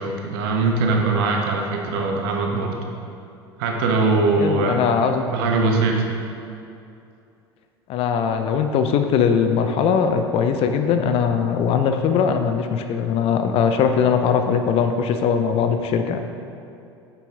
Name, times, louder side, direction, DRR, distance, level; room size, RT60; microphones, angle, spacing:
voice 1, 0.0-2.8 3.6-4.9 5.3-6.0, right 3 dB, 60° right, 1 dB, 1.2 m, -21 dB
voice 2, 4.4-5.2 7.9-16.2, left 7 dB, 45° left, 7 dB, 0.6 m, -20 dB
9.2 x 6.8 x 3.5 m, 2.6 s
figure-of-eight pair, 75°, 14 cm